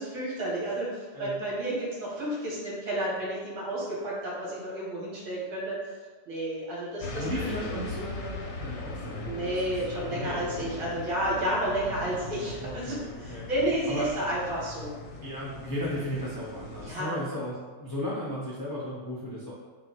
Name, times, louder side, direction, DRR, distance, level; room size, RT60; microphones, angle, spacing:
voice 1, 0.0-5.7 6.3-7.8 9.2-12.9 13.2-14.9 16.8-17.2, right 1 dB, 65° right, -5 dB, 1.6 m, -31 dB
sound 1, 7.0-16.9, left 2 dB, 65° left, 0.9 m, -39 dB
voice 2, 7.1-9.7 10.1-10.8 12.6-13.5 13.9-14.1 15.2-19.5, equal, 25° left, -8 dB, 0.5 m, -35 dB
3.9 x 2.4 x 4.4 m, 1.4 s
omnidirectional pair, 1.6 m